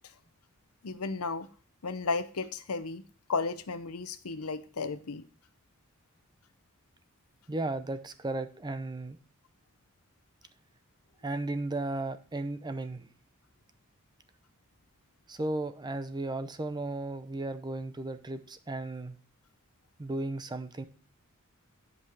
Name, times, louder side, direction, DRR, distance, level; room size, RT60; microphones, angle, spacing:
voice 1, 0.8-1.5 1.8-3.0 3.3-5.2, left 4 dB, 80° left, 11 dB, 0.8 m, -34 dB
voice 2, 7.5-9.2 11.2-13.1 15.3-19.2 20.0-20.8, right 2 dB, 20° right, 11 dB, 0.6 m, -35 dB
10.0 x 5.5 x 4.6 m, 0.40 s
head